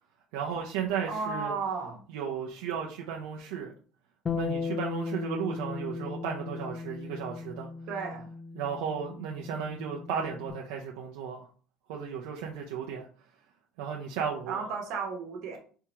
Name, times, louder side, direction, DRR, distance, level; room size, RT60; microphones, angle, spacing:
voice 1, 0.3-1.5 2.1-3.7 4.3-7.7 8.5-11.5 11.9-13.1 13.8-14.6, right 7 dB, 90° right, -1 dB, 0.6 m, -34 dB
voice 2, 1.1-2.0 7.9-8.3 14.5-15.6, right 5 dB, 65° right, 2 dB, 1.4 m, -34 dB
Bass guitar, 4.3-10.5, left 4 dB, 25° left, 0.4 m, -37 dB
3.6 x 2.9 x 4.6 m, 0.42 s
cardioid pair, 125°, 0 cm